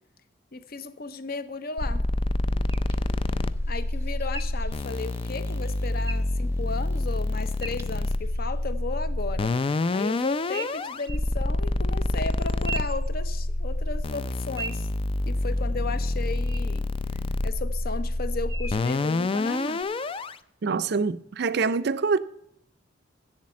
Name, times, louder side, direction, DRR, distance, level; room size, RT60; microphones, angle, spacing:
voice 1, 0.5-2.0 3.7-9.6 9.9-14.9 15.2-16.8 17.4-19.8, left 3 dB, 50° left, 0.7 m, -35 dB
sound 1, 1.8-20.4, left 2 dB, 30° left, 0.4 m, -27 dB
sound 2, 2.7-8.6 10.5-11.3 12.3-13.7 14.1-15.8 16.5-16.6 17.1-17.2 18.5-18.9 19.6-19.8, right 4 dB, 15° right, 0.7 m, -42 dB
voice 2, 20.6-22.2, right 4 dB, 55° right, 0.5 m, -25 dB
7.7 x 7.4 x 8.4 m
head